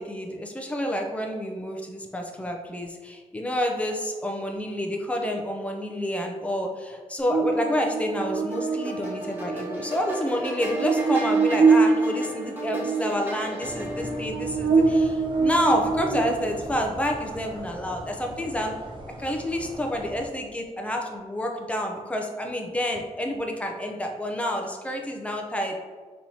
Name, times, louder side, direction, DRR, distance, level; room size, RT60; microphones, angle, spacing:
voice 1, 0.0-18.7 19.2-25.8, equal, 10° left, 2 dB, 0.5 m, -29 dB
Buzz, 7.3-16.7, right 4 dB, 75° right, 0.9 m, -25 dB
sound 1, 8.5-14.2, right 1 dB, 15° right, 1.1 m, -36 dB
sound 2, 13.6-20.3, right 1 dB, 40° right, 0.6 m, -40 dB
5.3 x 3.0 x 2.8 m, 1.4 s
wide cardioid pair, 130°, 12 cm